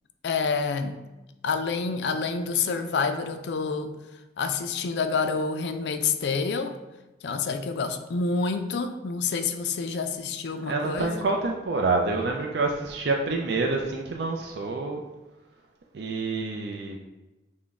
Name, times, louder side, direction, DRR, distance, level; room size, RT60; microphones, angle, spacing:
voice 1, 0.2-1.0 1.4-3.9 4.4-6.8 7.2-11.3, left 5 dB, 70° left, 8 dB, 0.4 m, -28 dB
voice 2, 10.7-15.0 15.9-17.0, right 3 dB, 65° right, 1 dB, 0.4 m, -27 dB
5.9 x 2.1 x 3.5 m, 1.1 s
head